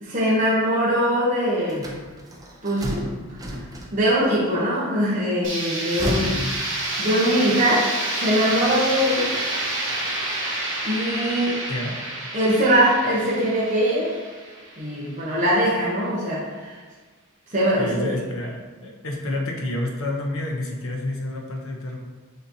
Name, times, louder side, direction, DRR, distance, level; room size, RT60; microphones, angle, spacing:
voice 1, 0.0-2.0 2.6-3.4 3.9-6.4 7.0-7.9 8.2-9.3 10.8-11.6 12.3-14.2 14.8-16.8 17.5-18.2, equal, 35° right, -7 dB, 0.9 m, -22 dB
sound 1, 1.7-4.3 5.6-7.4, equal, 15° right, 0.5 m, -32 dB
sound 2, 5.4-15.2, right 2 dB, 55° right, 1.1 m, -29 dB
voice 2, 6.3-6.6 11.7-12.0 17.8-22.0, left 1 dB, 60° left, 1 dB, 0.7 m, -29 dB
6.6 x 2.8 x 2.7 m, 1.4 s
head